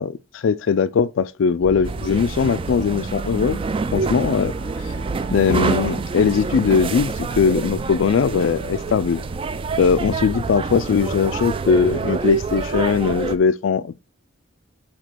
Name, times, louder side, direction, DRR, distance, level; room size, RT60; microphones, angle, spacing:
voice 1, 0.0-3.6 3.9-4.5 5.3-9.2 9.8-13.9, left 6 dB, 75° left, 0.4 m, -20 dB
sound 1, 1.6-13.4, right 3 dB, 85° right, 0.7 m, -34 dB
sound 2, 1.8-13.4, right 4 dB, 25° right, 0.3 m, -27 dB
5.1 x 4.2 x 5.9 m
head